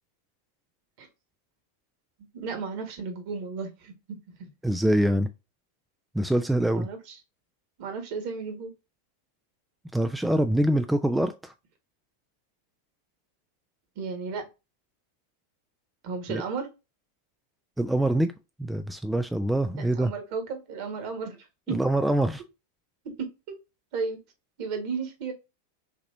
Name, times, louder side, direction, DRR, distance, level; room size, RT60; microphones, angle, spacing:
voice 1, 2.3-3.9 4.4-4.5 6.7-7.2 7.8-8.7 13.9-14.5 16.0-16.7 19.9-21.8 23.2-23.6 23.9-24.2 24.6-25.3, right 5 dB, 45° right, 1.6 m, -34 dB
voice 2, 4.6-5.3 6.1-6.9 9.9-11.5 16.3-16.4 17.8-18.3 18.6-20.1 21.7-22.4, right 1 dB, 5° right, 0.4 m, -24 dB
5.9 x 2.9 x 2.7 m
figure-of-eight pair, 90°, 0 cm